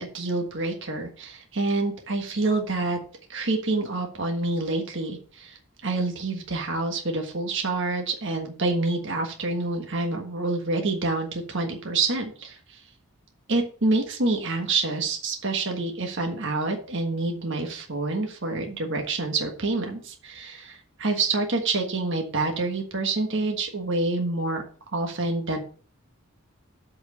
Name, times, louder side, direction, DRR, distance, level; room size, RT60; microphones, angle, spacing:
voice 1, 0.0-3.0 3.3-5.6 5.8-12.8 13.5-24.6 24.9-25.6, right 3 dB, 55° right, 2 dB, 1.5 m, -27 dB
7.9 x 4.8 x 6.6 m, 0.44 s
head